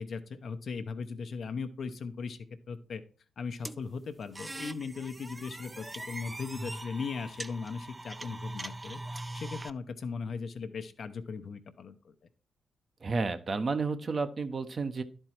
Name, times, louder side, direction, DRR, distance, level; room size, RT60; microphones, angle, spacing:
voice 1, 0.0-2.4 2.7-3.0 3.4-12.1, left 5 dB, 65° left, 8 dB, 0.8 m, -38 dB
sound 1, 3.6-9.7, right 1 dB, 20° right, 0.4 m, -41 dB
voice 2, 13.0-15.0, right 4 dB, 50° right, 9 dB, 0.8 m, -31 dB
10.5 x 4.5 x 4.4 m, 0.39 s
cardioid pair, 60°, 0 cm